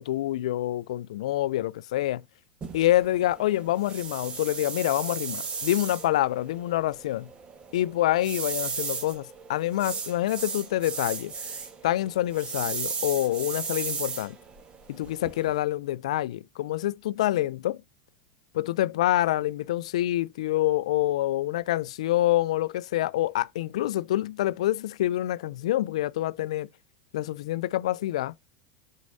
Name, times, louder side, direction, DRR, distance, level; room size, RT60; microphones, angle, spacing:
voice 1, 0.0-2.2 2.7-7.3 7.7-11.3 11.8-14.3 14.9-17.8 18.5-26.7 27.1-28.3, left 14 dB, 75° left, 0.4 m, -26 dB
sound 1, 2.6-15.6, right 5 dB, 30° right, 1.4 m, -36 dB
6.4 x 6.2 x 2.6 m
hypercardioid pair, 105°, 3 cm